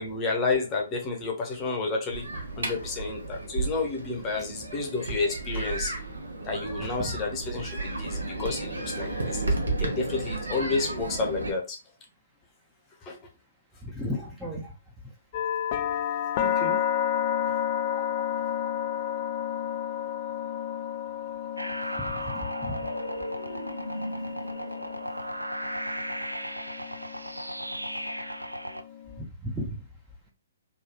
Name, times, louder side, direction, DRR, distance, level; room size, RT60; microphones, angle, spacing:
voice 1, 0.0-2.3 2.6-5.9 6.4-9.4 9.8-11.8 13.0-13.2, left 3 dB, 20° left, 1 dB, 0.8 m, -30 dB
sound 1, 2.1-11.5, right 2 dB, 70° right, 0.8 m, -33 dB
voice 2, 13.8-14.7 16.4-16.8 17.9-18.0 22.0-22.8 29.4-29.7, left 1 dB, 5° right, -3 dB, 0.6 m, -34 dB
sound 2, 15.3-29.2, left 9 dB, 35° left, 0.3 m, -32 dB
sound 3, 21.6-28.8, right 1 dB, 90° right, 0.3 m, -35 dB
3.1 x 2.3 x 2.8 m, 0.30 s
figure-of-eight pair, 125°, 0 cm